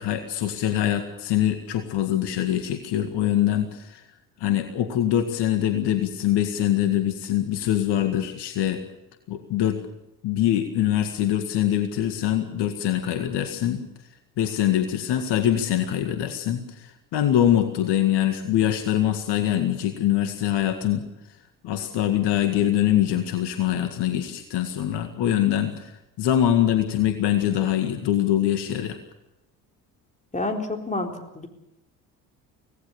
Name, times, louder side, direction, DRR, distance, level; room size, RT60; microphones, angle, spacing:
voice 1, 0.0-4.0 4.4-8.8 9.3-9.8 10.2-13.8 14.4-21.0 21.6-29.0, left 11 dB, 55° left, 7 dB, 2.0 m, -23 dB
voice 2, 30.3-31.5, left 2 dB, 15° left, 3 dB, 4.0 m, -29 dB
25.5 x 18.0 x 7.1 m, 0.89 s
figure-of-eight pair, 55°, 50 cm